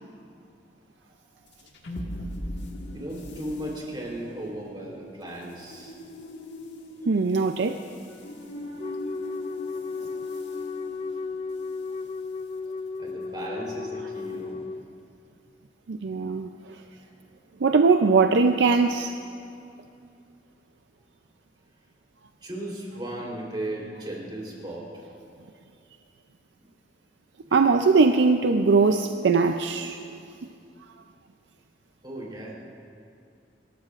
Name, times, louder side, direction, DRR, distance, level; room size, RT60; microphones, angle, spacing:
sound 1, 1.5-12.0, left 1 dB, 85° left, 1.7 m, -41 dB
voice 1, 2.9-5.9 13.0-14.6 16.7-17.1 22.4-24.9 27.5-27.6 32.0-32.5, right 1 dB, 25° right, -3 dB, 3.5 m, -36 dB
voice 2, 7.1-7.8 15.9-16.5 17.6-19.1 27.5-30.0, right 4 dB, 80° right, 6 dB, 0.5 m, -20 dB
Wind instrument woodwind instrument, 8.8-14.8, left 4 dB, 35° left, 0.4 m, -34 dB
26.5 x 14.0 x 2.5 m, 2.4 s
head